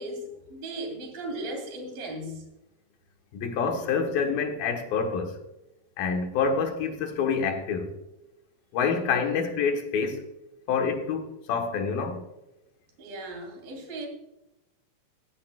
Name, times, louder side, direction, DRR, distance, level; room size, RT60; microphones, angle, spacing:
voice 1, 0.0-2.5 13.0-14.1, right 1 dB, 70° right, 4.3 m, -37 dB
voice 2, 3.3-5.4 6.0-7.9 8.7-10.2 10.7-12.2, left 5 dB, 75° left, 3.1 m, -27 dB
16.0 x 10.5 x 2.4 m
omnidirectional pair, 4.2 m